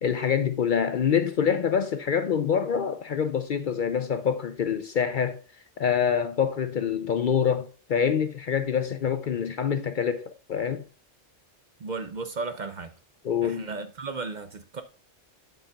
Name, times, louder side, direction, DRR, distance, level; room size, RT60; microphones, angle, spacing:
voice 1, 0.0-5.4 5.8-10.8 13.2-13.7, left 7 dB, 55° left, 0.6 m, -26 dB
voice 2, 11.8-12.9 13.4-14.8, right 4 dB, 45° right, 0.7 m, -34 dB
7.9 x 7.1 x 2.3 m
omnidirectional pair, 1.2 m